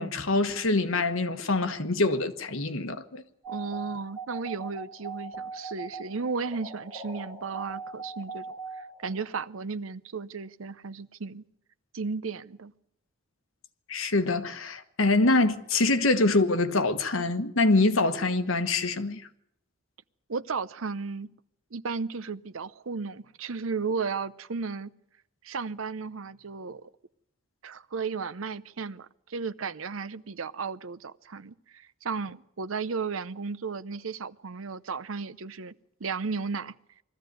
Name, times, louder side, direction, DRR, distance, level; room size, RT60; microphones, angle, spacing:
voice 1, 0.0-3.2 13.9-19.2, left 2 dB, 85° left, 1.3 m, -25 dB
sound 1, 3.4-9.2, right 4 dB, 25° right, 6.3 m, -40 dB
voice 2, 3.5-11.5 11.9-12.7 20.3-21.3 21.7-24.9 25.4-26.9 27.6-36.7, right 4 dB, 90° right, 0.7 m, -34 dB
21.0 x 14.0 x 9.3 m
head